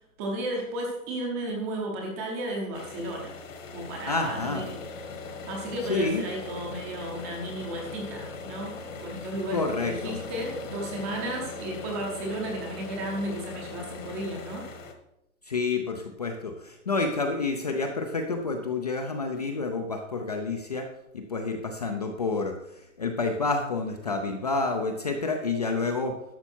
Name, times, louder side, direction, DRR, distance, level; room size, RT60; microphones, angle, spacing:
voice 1, 0.2-3.4 3.7-4.8 5.5-14.7, right 1 dB, 10° right, 0 dB, 0.8 m, -34 dB
sound 1, 2.7-14.9, left 3 dB, 60° left, 1.9 m, -40 dB
voice 2, 4.1-4.6 5.9-6.2 9.5-10.2 15.5-20.9 21.1-22.5 23.0-26.1, left 3 dB, 30° left, 4 dB, 0.5 m, -29 dB
11.5 x 6.8 x 4.4 m, 0.85 s
hypercardioid pair, 170°, 44 cm